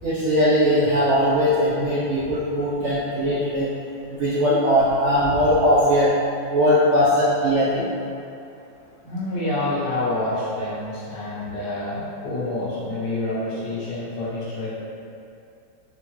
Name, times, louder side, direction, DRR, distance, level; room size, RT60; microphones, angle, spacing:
voice 1, 0.0-3.7 4.1-6.1 6.5-7.9, equal, 60° right, -10 dB, 0.7 m, -20 dB
voice 2, 9.0-14.7, left 2 dB, 70° left, -8 dB, 1.5 m, -28 dB
4.1 x 3.7 x 3.0 m, 2.6 s
omnidirectional pair, 2.0 m